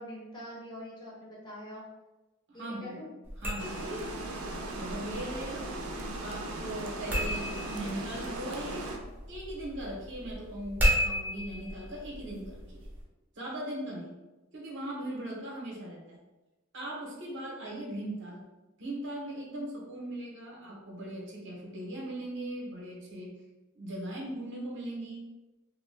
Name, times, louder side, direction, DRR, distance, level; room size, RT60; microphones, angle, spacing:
voice 1, 0.0-1.8 2.5-3.1, equal, 20° left, -6 dB, 0.8 m, -44 dB
voice 2, 2.5-3.0 3.4-4.1 4.7-5.7 6.2-8.9 9.3-12.8 13.4-14.1 14.5-16.2 16.7-18.5 18.8-23.3 23.7-25.3, right 1 dB, 55° right, -3 dB, 0.7 m, -39 dB
sound 1, 3.2-13.0, equal, 10° right, 0.5 m, -35 dB
Water, 3.6-9.0, right 2 dB, 85° right, 0.4 m, -38 dB
2.5 x 2.2 x 3.2 m, 1.1 s
head